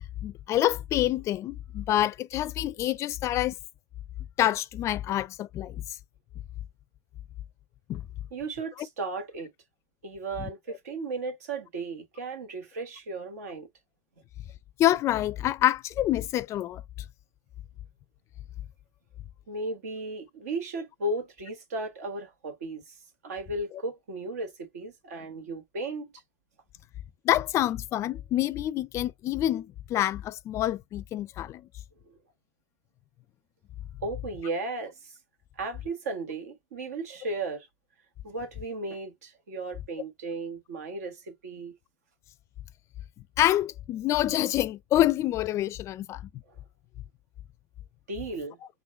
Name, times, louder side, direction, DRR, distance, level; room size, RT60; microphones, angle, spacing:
voice 1, 0.2-3.6 4.4-5.8 7.9-8.0 10.4-10.5 14.8-16.8 27.2-31.6 43.4-46.2, left 13 dB, 35° left, 0.4 m, -27 dB
voice 2, 8.3-9.5 10.0-13.7 19.5-22.8 23.2-26.1 34.0-35.1 35.6-37.7 38.2-41.7 48.1-48.6, right 2 dB, 85° right, 1.4 m, -35 dB
3.9 x 2.1 x 3.8 m
supercardioid pair, 125°, 8 cm